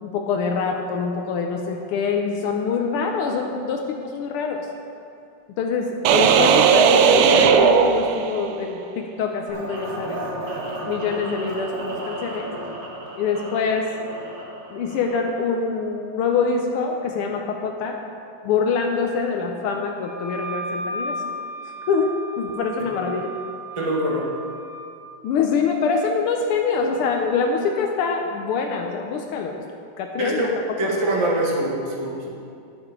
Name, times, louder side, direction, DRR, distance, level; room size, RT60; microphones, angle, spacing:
voice 1, 0.0-4.7 5.6-10.2 10.8-12.5 13.2-13.9 14.7-18.0 18.4-21.2 21.9-23.3 25.2-29.5 30.0-31.0, left 5 dB, 80° left, 2 dB, 1.2 m, -25 dB
sound 1, 6.1-8.7, right 7 dB, 85° right, 2.0 m, -16 dB
sound 2, 9.5-15.4, right 1 dB, 55° right, 2.5 m, -34 dB
Wind instrument woodwind instrument, 20.0-25.0, right 1 dB, 65° left, 2.2 m, -34 dB
voice 2, 23.8-24.3 30.2-30.5 30.8-32.3, right 1 dB, 40° right, -3 dB, 0.4 m, -24 dB
11.0 x 8.7 x 4.9 m, 2.4 s
omnidirectional pair, 3.3 m